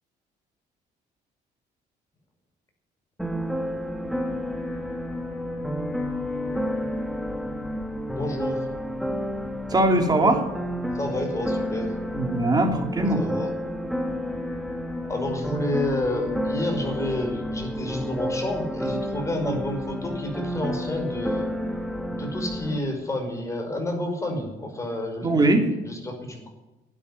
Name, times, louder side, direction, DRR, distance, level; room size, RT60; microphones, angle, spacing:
sound 1, 3.2-22.8, equal, ahead, 1.5 m, -30 dB
voice 1, 8.1-8.7 10.9-11.9 13.1-13.5 15.1-21.5 22.1-25.5 25.8-26.5, left 1 dB, 20° left, 2 dB, 5.4 m, -30 dB
voice 2, 9.7-10.5 12.1-13.2 19.4-19.5 25.2-25.7, right 2 dB, 25° right, 4 dB, 3.0 m, -21 dB
12.0 x 9.7 x 9.8 m, 1.0 s
cardioid pair, 110°, 17 cm